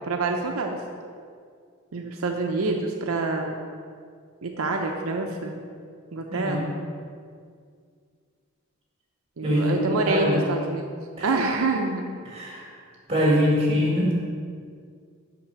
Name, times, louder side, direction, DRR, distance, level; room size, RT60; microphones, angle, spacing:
voice 1, 0.1-0.8 1.9-3.6 4.4-5.6 6.1-6.7 9.4-10.9 11.2-12.0, right 3 dB, 80° right, 2 dB, 0.6 m, -26 dB
voice 2, 6.3-6.7 9.4-10.4 11.2-11.3 12.3-12.7 13.1-14.1, equal, 25° right, -4 dB, 2.3 m, -23 dB
6.0 x 5.7 x 6.7 m, 2.1 s
head